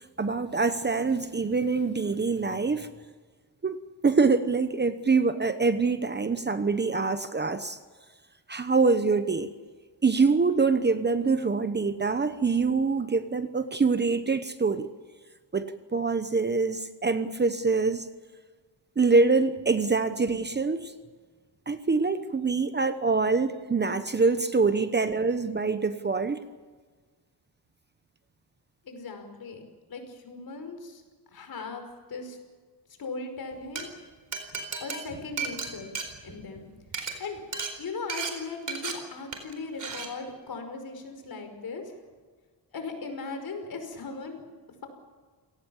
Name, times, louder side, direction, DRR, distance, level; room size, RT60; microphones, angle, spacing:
voice 1, 0.2-2.9 3.6-3.8 4.0-7.8 8.5-9.5 10.0-14.9 15.5-18.1 19.0-20.9 21.7-26.4, right 4 dB, 25° right, 11 dB, 1.0 m, -25 dB
voice 2, 28.9-29.6 29.9-31.0 31.3-32.4 33.0-33.9 34.8-35.9 36.2-36.7 37.2-37.4 37.8-41.8 42.7-44.4, left 4 dB, 55° left, 6 dB, 5.4 m, -38 dB
Glass, 33.5-33.8 34.3-36.6 36.9-37.1 37.5-37.7 38.1-38.3 38.7-38.9 39.3-39.5 39.8-40.1, right 5 dB, 45° right, 4.3 m, -33 dB
28.5 x 18.5 x 7.3 m, 1.4 s
wide cardioid pair, 140°, 42 cm